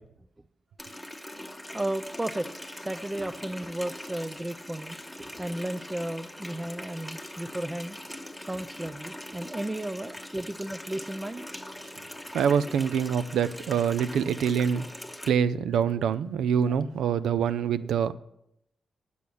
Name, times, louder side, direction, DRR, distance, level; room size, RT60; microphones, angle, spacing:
Water tap faucet, 0.8-15.3, left 1 dB, 5° left, 1.0 m, -42 dB
voice 1, 1.7-8.0 8.5-11.4 16.7-16.8, right 1 dB, 15° right, 0.4 m, -34 dB
voice 2, 12.3-14.9 15.3-18.1, right 7 dB, 90° right, 0.4 m, -25 dB
8.4 x 7.0 x 6.3 m
cardioid pair, 75°, 0 cm